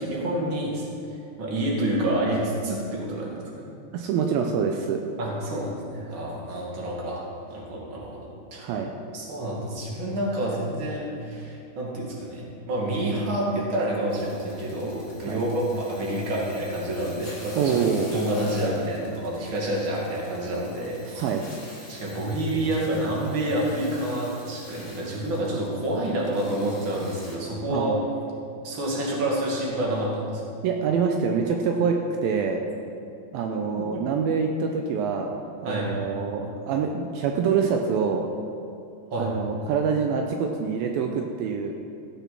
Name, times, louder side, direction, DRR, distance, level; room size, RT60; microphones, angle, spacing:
voice 1, 0.0-3.7 5.2-7.2 7.5-8.6 9.1-17.8 18.1-21.2 21.9-28.0 28.6-30.4 33.5-34.0 35.6-36.0 39.1-39.3, right 1 dB, 35° right, -3 dB, 2.2 m, -28 dB
voice 2, 3.9-5.0 8.6-8.9 15.3-15.4 17.6-18.1 21.1-21.5 27.7-28.0 30.6-32.0 32.2-32.6 33.3-35.3 35.6-38.3 39.2-41.8, right 6 dB, 85° right, 3 dB, 2.1 m, -25 dB
sound 1, 14.1-27.3, left 1 dB, 15° left, 2.4 m, -47 dB
16.0 x 7.0 x 6.0 m, 2.5 s
omnidirectional pair, 4.9 m